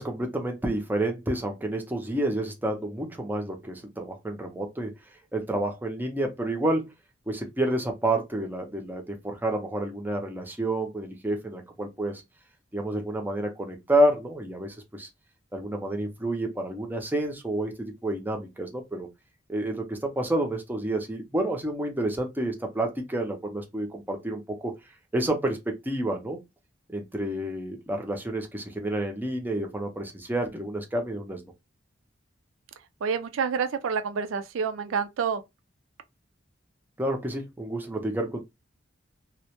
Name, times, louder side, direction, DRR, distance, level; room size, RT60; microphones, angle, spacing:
voice 1, 0.0-4.9 5.3-6.9 7.3-12.2 12.7-15.1 15.5-19.1 19.5-24.7 25.1-26.4 26.9-31.4 37.0-38.4, right 1 dB, 10° right, 0.5 m, -29 dB
voice 2, 33.0-35.4, right 6 dB, 90° right, 0.4 m, -28 dB
2.1 x 2.0 x 2.8 m
head